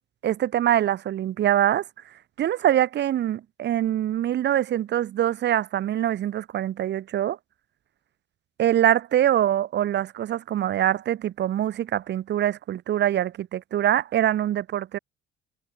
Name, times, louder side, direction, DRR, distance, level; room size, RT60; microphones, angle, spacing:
voice 1, 0.2-1.8 2.4-7.4 8.6-15.0, right 11 dB, 55° right, 5.5 m, -24 dB
cardioid pair, 110°, 21 cm